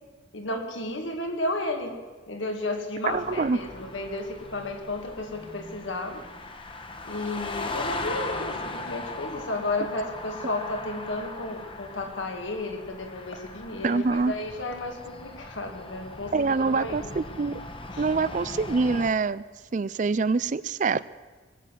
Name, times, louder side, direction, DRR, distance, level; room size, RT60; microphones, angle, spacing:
voice 1, 0.3-1.9 2.3-6.2 7.0-17.2 17.9-18.1, left 2 dB, 85° left, 3 dB, 2.2 m, -33 dB
sound 1, 3.1-19.1, left 2 dB, 25° left, 1.0 m, -39 dB
voice 2, 3.1-3.6 13.8-14.3 16.3-17.6 18.0-19.4 19.7-21.1, right 4 dB, 40° right, 18 dB, 0.4 m, -25 dB
20.0 x 8.3 x 7.6 m, 1.4 s
head